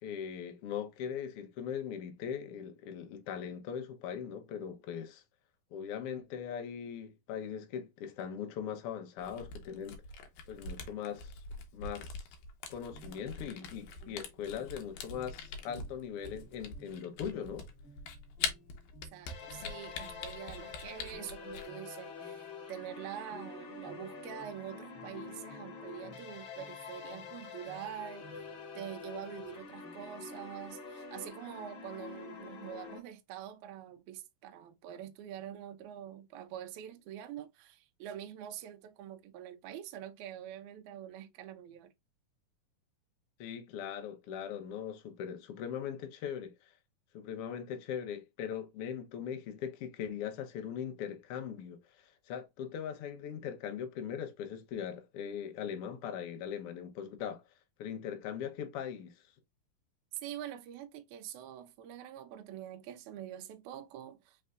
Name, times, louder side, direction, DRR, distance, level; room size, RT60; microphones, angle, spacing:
voice 1, 0.0-5.2 5.7-10.0 10.5-11.3 11.7-12.3 12.7-17.7 43.4-46.7 47.1-57.4 57.8-59.2, left 8 dB, 90° left, 1.2 m, -40 dB
Camera, 9.2-21.7, left 5 dB, 70° left, 2.1 m, -43 dB
sound 1, 12.9-30.4, right 1 dB, 25° left, 1.6 m, -59 dB
voice 2, 19.1-28.4 28.7-41.9 60.1-64.4, right 11 dB, 80° right, 1.8 m, -45 dB
sound 2, 19.3-33.0, left 5 dB, 55° left, 2.1 m, -47 dB
5.4 x 3.3 x 2.4 m
omnidirectional pair, 3.9 m